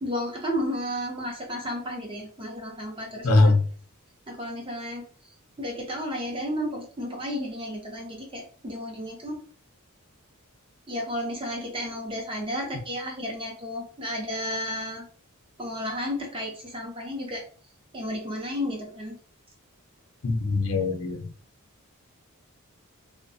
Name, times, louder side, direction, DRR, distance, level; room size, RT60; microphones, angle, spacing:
voice 1, 0.0-3.5 4.3-5.1 5.6-9.4 10.9-15.1 15.6-17.4 17.9-19.2, equal, 25° right, 0 dB, 0.7 m, -32 dB
voice 2, 3.2-3.6 20.2-21.3, left 2 dB, 75° left, 3 dB, 0.6 m, -21 dB
2.6 x 2.2 x 2.6 m, 0.43 s
head